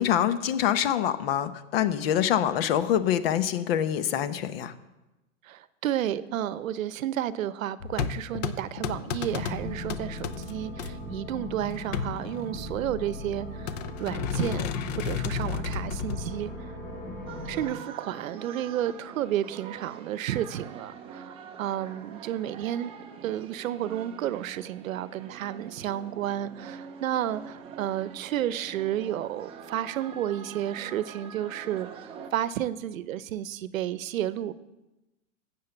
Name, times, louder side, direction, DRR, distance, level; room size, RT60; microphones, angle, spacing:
voice 1, 0.0-4.7, left 10 dB, 50° left, 12 dB, 0.9 m, -25 dB
voice 2, 5.4-14.7 15.0-16.5 17.4-22.9 23.2-34.5, right 11 dB, 85° right, 16 dB, 0.8 m, -32 dB
sound 1, 7.8-10.9 11.7-12.8 13.7-16.3, left 7 dB, 35° left, 0.5 m, -32 dB
sound 2, 9.3-17.7, left 1 dB, 5° left, 4.9 m, -38 dB
sound 3, 17.3-32.3, right 7 dB, 15° right, 0.6 m, -45 dB
9.9 x 7.6 x 7.1 m, 1.0 s
supercardioid pair, 155°, 39 cm